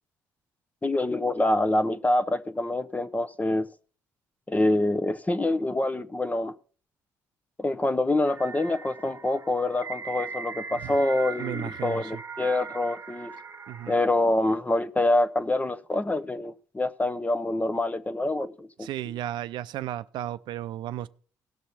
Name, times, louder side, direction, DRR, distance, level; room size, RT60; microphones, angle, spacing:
voice 1, 0.8-3.7 4.5-6.5 7.6-13.3 13.9-18.9, left 2 dB, 20° left, 0.9 m, -26 dB
sound 1, 8.3-14.0, right 5 dB, 35° right, 1.1 m, -40 dB
voice 2, 11.4-12.2 13.7-14.0 18.8-21.1, right 12 dB, 70° right, 0.5 m, -34 dB
17.5 x 6.2 x 4.2 m
supercardioid pair, 55°, 8 cm